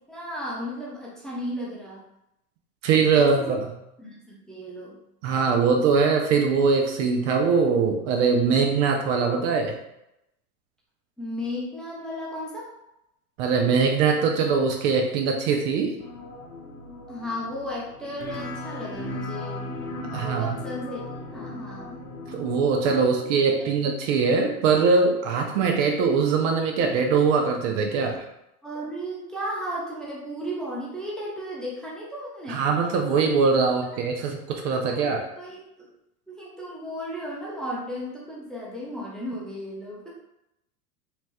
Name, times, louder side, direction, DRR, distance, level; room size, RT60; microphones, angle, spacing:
voice 1, 0.1-2.0 3.1-3.6 4.0-5.0 11.2-12.7 17.1-19.7 20.0-22.0 22.9-23.9 28.6-32.7 34.8-35.9 36.3-40.1, equal, ahead, -5 dB, 0.6 m, -35 dB
voice 2, 2.8-3.7 5.2-9.7 13.4-15.9 20.1-20.5 22.3-28.2 32.5-35.2, right 5 dB, 50° right, 2 dB, 0.6 m, -22 dB
sound 1, 16.0-22.8, left 2 dB, 50° left, 0.9 m, -37 dB
2.9 x 2.9 x 2.2 m, 0.85 s
hypercardioid pair, 90°, 47 cm